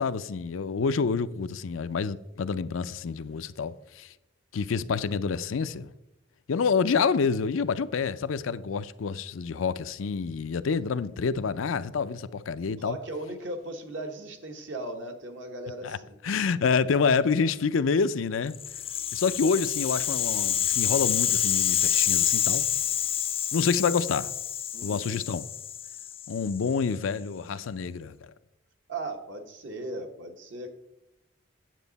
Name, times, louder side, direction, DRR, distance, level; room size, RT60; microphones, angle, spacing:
voice 1, 0.0-4.1 4.5-5.9 6.5-13.0 15.8-16.0 16.2-18.6 19.1-22.7 23.5-24.3 24.8-25.5 26.3-28.3, left 5 dB, 85° left, 0.5 m, -27 dB
voice 2, 12.8-16.1 24.7-25.1 28.9-30.7, right 2 dB, 65° right, 1.3 m, -37 dB
Rattle (instrument), 18.5-26.7, left 10 dB, 30° left, 0.4 m, -28 dB
9.2 x 7.6 x 4.0 m
head